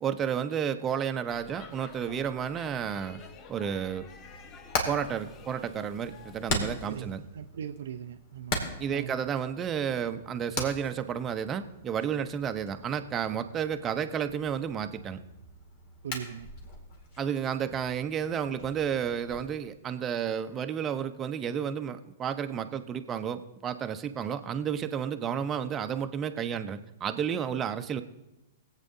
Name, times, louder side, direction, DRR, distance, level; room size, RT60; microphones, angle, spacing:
voice 1, 0.0-3.2 3.5-4.1 4.9-7.2 8.8-15.2 17.2-28.0, right 8 dB, 25° right, 8 dB, 0.7 m, -31 dB
Speech / Shout / Subway metro underground, 1.3-6.5, left 5 dB, 30° left, 0.9 m, -50 dB
Hammer, 4.2-19.5, left 2 dB, 50° left, 2.2 m, -40 dB
voice 2, 6.8-9.3 16.0-16.5, right 9 dB, 65° right, 9 dB, 0.5 m, -40 dB
21.5 x 8.2 x 2.7 m, 0.94 s
hypercardioid pair, 110°, 0 cm